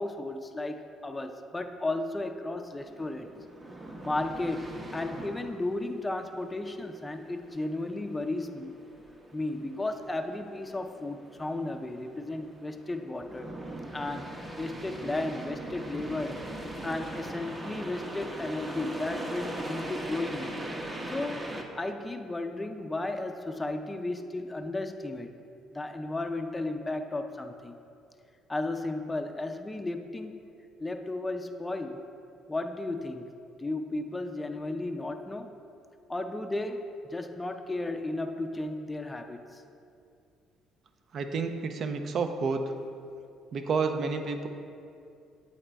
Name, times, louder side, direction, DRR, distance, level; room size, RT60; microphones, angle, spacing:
voice 1, 0.0-3.3 4.0-8.8 9.3-13.5 13.9-20.5 21.1-21.5 21.8-25.3 25.7-27.8 28.5-30.5 30.8-32.0 32.5-33.3 33.6-35.6 36.1-39.6, left 2 dB, 15° left, 5 dB, 0.4 m, -34 dB
sound 1, 2.8-21.6, right 1 dB, 25° right, 0.8 m, -41 dB
voice 2, 41.1-42.7 43.5-44.5, right 4 dB, 55° right, 6 dB, 0.5 m, -30 dB
8.6 x 4.1 x 3.4 m, 2.5 s
cardioid pair, 85°, 0 cm